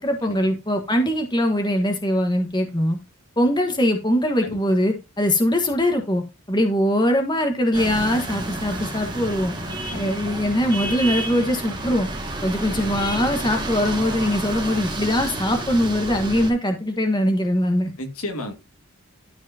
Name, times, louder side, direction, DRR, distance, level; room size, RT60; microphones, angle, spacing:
voice 1, 0.0-3.0 3.4-6.2 6.5-9.5 9.9-12.1 12.4-17.9, equal, 20° left, 1.4 m, -22 dB
sound 1, 7.7-16.5, right 2 dB, 20° right, 2.3 m, -30 dB
voice 2, 9.2-10.4 12.8-12.9 18.0-18.5, left 1 dB, 80° left, 2.1 m, -34 dB
13.0 x 4.8 x 2.8 m
head